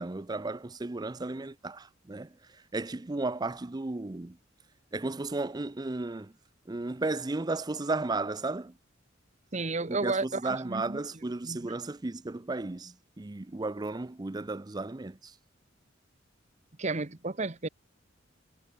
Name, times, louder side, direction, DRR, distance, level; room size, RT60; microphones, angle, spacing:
voice 1, 0.0-2.3 2.7-4.4 4.9-6.3 6.7-8.7 9.9-15.3, right 2 dB, 20° right, 0.5 m, -34 dB
voice 2, 9.5-11.0 11.4-11.7 16.8-17.7, right 3 dB, 35° right, 1.2 m, -32 dB
head